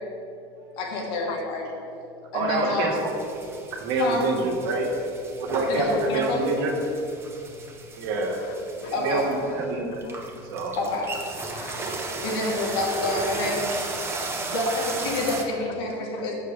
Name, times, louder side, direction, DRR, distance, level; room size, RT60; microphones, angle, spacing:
voice 1, 0.8-1.7 2.3-2.9 4.0-4.3 5.7-6.5 8.9-9.3 10.8-11.1 12.2-13.7 14.5-16.3, left 2 dB, 80° left, -2 dB, 2.3 m, -27 dB
voice 2, 2.3-3.1 3.7-4.9 5.4-5.8 6.1-6.7 8.0-8.4 8.8-10.1 10.5-10.7, right 3 dB, 80° right, 0 dB, 1.8 m, -26 dB
sound 1, 2.9-15.4, right 3 dB, 20° right, 1.0 m, -35 dB
voice 3, 8.5-8.9 10.0-10.2 11.5-12.7 14.3-14.4 16.2-16.3, left 11 dB, 60° left, 10 dB, 0.4 m, -43 dB
7.1 x 5.9 x 6.7 m, 2.6 s
supercardioid pair, 130°, 13 cm